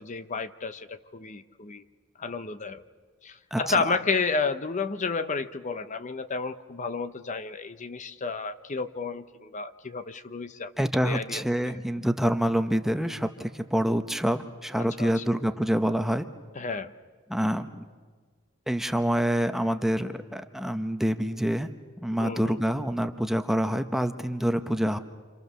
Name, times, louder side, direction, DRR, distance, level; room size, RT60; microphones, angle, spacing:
voice 1, 0.0-1.8 2.2-2.8 3.2-11.8 14.8-15.2 16.5-16.9 22.2-22.6, left 4 dB, 35° left, 11 dB, 0.8 m, -32 dB
voice 2, 3.5-4.0 10.8-16.2 17.3-17.8 18.7-21.7 22.0-25.0, equal, ahead, 8 dB, 0.8 m, -26 dB
28.5 x 26.0 x 6.8 m, 1.5 s
head